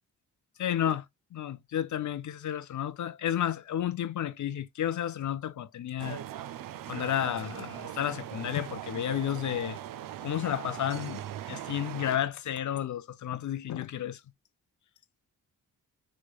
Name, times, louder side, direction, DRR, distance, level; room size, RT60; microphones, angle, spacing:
voice 1, 0.6-1.0 1.3-6.2 6.9-9.8 10.2-14.2, left 10 dB, 45° left, 0.5 m, -32 dB
sound 1, 6.0-12.2, right 12 dB, 50° right, 0.5 m, -40 dB
3.2 x 3.0 x 2.3 m
hypercardioid pair, 40°, 42 cm